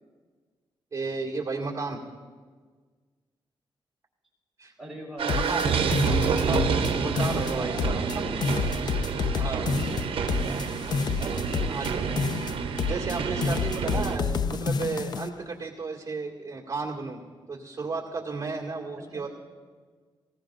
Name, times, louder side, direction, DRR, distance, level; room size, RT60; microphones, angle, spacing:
voice 1, 0.9-2.0 4.6-4.7 5.3-5.6 6.0-6.6 7.0-8.2 9.3-9.8 11.7-12.0 12.9-17.2 17.5-19.3, right 4 dB, 30° right, -2 dB, 2.1 m, -33 dB
voice 2, 4.8-5.8 7.4-8.7 9.4-10.2 10.4-10.8 11.2-12.3 18.9-19.3, right 1 dB, 5° right, -6 dB, 4.5 m, -42 dB
sound 1, 5.2-14.2, right 5 dB, 70° right, 0.8 m, -28 dB
sound 2, 5.3-6.9 7.2-8.2 8.4-11.9 12.2-13.2 13.4-15.3, left 6 dB, 50° left, 0.4 m, -29 dB
19.5 x 17.5 x 2.5 m, 1.5 s
wide cardioid pair, 155°, 9 cm